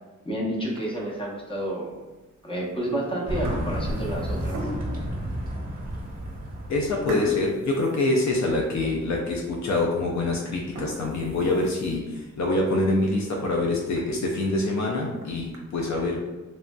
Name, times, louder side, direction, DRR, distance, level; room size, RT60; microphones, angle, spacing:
voice 1, 0.2-1.9 2.4-4.7, right 1 dB, 15° left, -3 dB, 0.9 m, -30 dB
sound 1, 0.6-1.2 1.7-1.8 2.7-2.9 3.2-5.1 5.7-5.8 6.1-6.3 7.1-8.8 9.2-9.3 9.8-9.9 10.5-12.2 12.6-12.7 13.1-13.2 13.6-13.7 14.0-14.1 15.0-15.6, right 1 dB, 65° right, 0.6 m, -38 dB
sound 2, 3.3-7.6, equal, 30° right, 0.9 m, -31 dB
voice 2, 6.7-16.2, left 2 dB, 65° left, -1 dB, 0.5 m, -25 dB
3.1 x 2.5 x 2.2 m, 1.2 s
cardioid pair, 55°, 31 cm